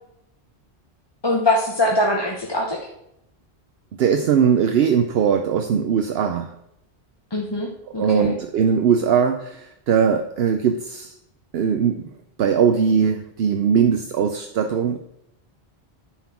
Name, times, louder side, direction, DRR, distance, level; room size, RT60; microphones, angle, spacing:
voice 1, 1.2-2.8 7.3-7.7 7.9-8.3, left 1 dB, 25° left, -1 dB, 0.9 m, -22 dB
voice 2, 4.0-6.5 8.0-11.1 11.5-12.1 12.4-15.0, right 7 dB, 70° right, 6 dB, 0.8 m, -20 dB
9.4 x 4.6 x 5.8 m, 0.79 s
omnidirectional pair, 1.1 m